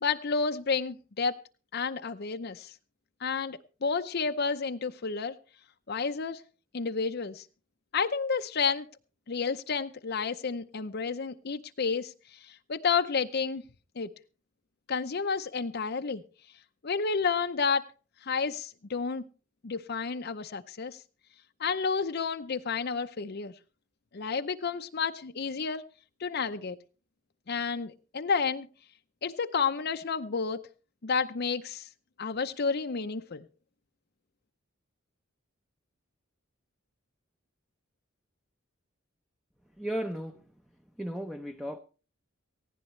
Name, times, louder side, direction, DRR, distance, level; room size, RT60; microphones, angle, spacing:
voice 1, 0.0-1.4 1.7-2.7 3.2-5.4 5.9-6.4 6.7-7.5 7.9-8.9 9.3-13.6 14.0-14.1 14.9-16.2 16.8-17.9 18.2-19.2 19.6-21.0 21.6-23.5 24.1-25.8 26.2-26.8 27.5-28.7 29.2-30.6 31.0-31.9 32.2-33.4, left 5 dB, 55° left, 0.6 m, -30 dB
voice 2, 39.8-40.4 41.0-41.8, right 1 dB, ahead, 0.7 m, -35 dB
18.5 x 15.5 x 3.2 m
head